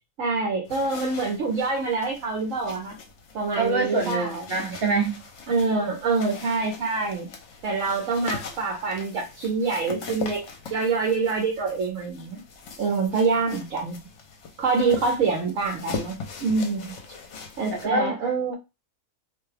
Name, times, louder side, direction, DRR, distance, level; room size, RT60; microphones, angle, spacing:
voice 1, 0.2-3.0 3.3-4.8 5.5-7.3 7.6-12.4 12.8-14.1 14.6-16.9 17.6-18.5, right 4 dB, 70° right, 1.3 m, -26 dB
sound 1, 0.6-17.9, left 5 dB, 65° left, 1.0 m, -40 dB
voice 2, 3.5-5.2 17.7-18.2, right 3 dB, 50° right, 1.1 m, -25 dB
2.8 x 2.3 x 3.3 m
omnidirectional pair, 1.4 m